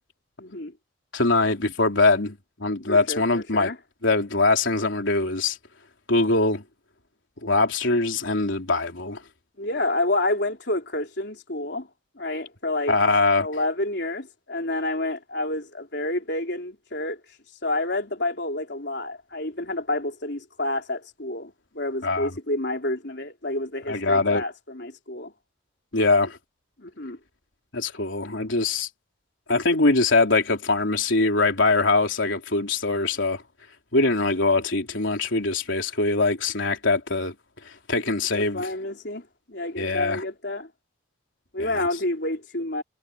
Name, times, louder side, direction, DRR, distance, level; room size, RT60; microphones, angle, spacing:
voice 1, 0.4-0.7 2.8-3.8 9.6-11.9 12.2-12.9 13.4-17.2 17.6-25.3 26.8-27.2 38.3-40.7 41.5-42.8, left 2 dB, 60° left, 3.9 m, -29 dB
voice 2, 1.1-3.7 4.0-5.6 6.1-6.6 7.4-9.2 12.9-13.5 22.0-22.3 23.9-24.4 25.9-26.4 27.7-28.9 29.5-33.4 33.9-37.3 37.7-38.7 39.8-40.2 41.6-41.9, left 3 dB, 85° left, 3.5 m, -22 dB
head